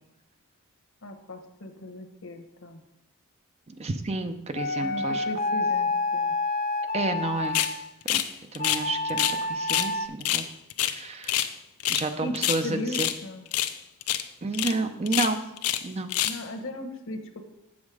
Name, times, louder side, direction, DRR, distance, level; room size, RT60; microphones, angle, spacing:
voice 1, 1.0-2.8 4.8-6.3 12.2-13.4 16.2-17.4, left 1 dB, 60° left, 7 dB, 1.0 m, -37 dB
voice 2, 3.7-5.2 6.9-7.6 8.1-8.2 8.5-10.4 10.8-11.5 11.9-13.1 14.4-15.4 15.8-16.1, right 3 dB, 30° right, 8 dB, 0.5 m, -30 dB
sound 1, 4.6-7.8 8.6-10.1, left 3 dB, 35° left, 0.7 m, -28 dB
sound 2, 7.5-7.7 8.1-8.3 8.5-9.4 9.7-9.9 10.2-11.5 11.8-12.1 12.3-13.2 13.5-13.8 14.0-14.2 14.5-14.7 15.1-15.8 16.1-16.4, left 12 dB, 80° left, 0.5 m, -26 dB
7.4 x 7.3 x 4.8 m, 0.91 s
head